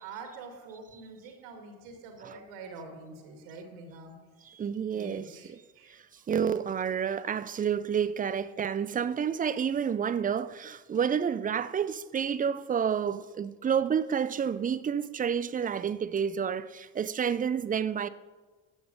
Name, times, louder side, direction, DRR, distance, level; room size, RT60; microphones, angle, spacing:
voice 1, 0.0-4.1 4.9-6.0 7.0-7.2 7.6-7.7, right 4 dB, 70° right, 2.0 m, -46 dB
voice 2, 4.4-5.6 5.9-18.1, right 7 dB, 20° right, 0.5 m, -30 dB
12.5 x 7.8 x 5.1 m
hypercardioid pair, 55°, 42 cm